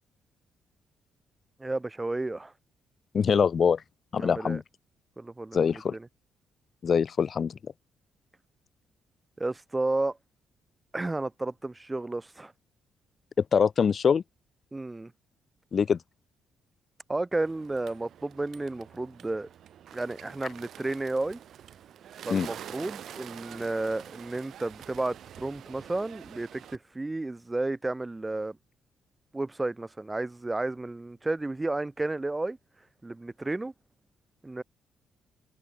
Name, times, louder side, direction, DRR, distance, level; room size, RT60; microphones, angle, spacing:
voice 1, 1.6-2.5 4.2-4.6 5.2-6.1 9.4-10.2 10.9-12.5 14.7-15.1 17.1-19.5 19.9-21.4 22.3-28.6 29.3-32.6 33.0-33.7 34.4-34.6, right 2 dB, 15° right, 1.1 m, -32 dB
voice 2, 3.1-3.8 4.1-4.6 5.5-6.0 6.8-7.5 13.5-14.2 15.7-16.0 22.3-22.5, left 6 dB, 45° left, 0.3 m, -23 dB
Bird, 17.3-26.8, right 10 dB, 65° right, 3.2 m, -46 dB
cardioid pair, 90°, 0 cm